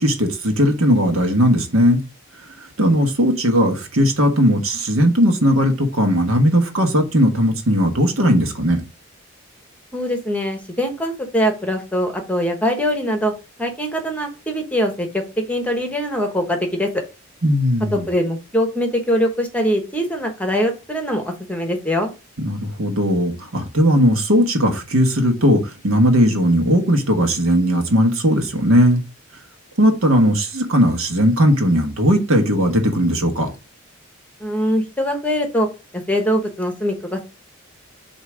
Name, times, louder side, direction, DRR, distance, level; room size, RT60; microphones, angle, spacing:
voice 1, 0.0-2.0 2.8-8.8 17.4-18.1 22.4-29.0 29.8-33.5, equal, 70° right, 1.4 m, -17 dB
voice 2, 9.9-13.3 13.6-15.2 15.5-16.9 17.9-22.1 34.4-35.7 36.1-37.2, equal, 5° left, 1.0 m, -22 dB
8.0 x 2.9 x 4.9 m
head